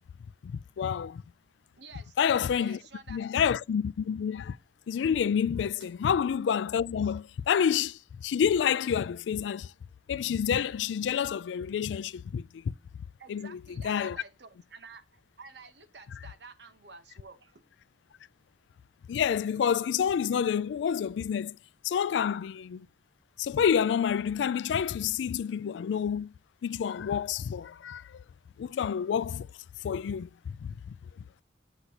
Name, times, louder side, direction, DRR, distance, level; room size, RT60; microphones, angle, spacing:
voice 1, 0.4-1.2 2.2-2.8 3.1-4.6 4.9-9.7 10.1-12.6 13.3-13.5 13.8-14.2 19.1-21.6 21.8-22.9 23.4-26.3 26.6-28.2 28.6-29.5 29.8-30.9, left 8 dB, 90° left, 0.3 m, -28 dB
voice 2, 1.8-2.1 2.5-3.3 5.8-5.9 13.2-17.6, right 4 dB, 70° right, 0.9 m, -50 dB
8.1 x 8.1 x 2.8 m
head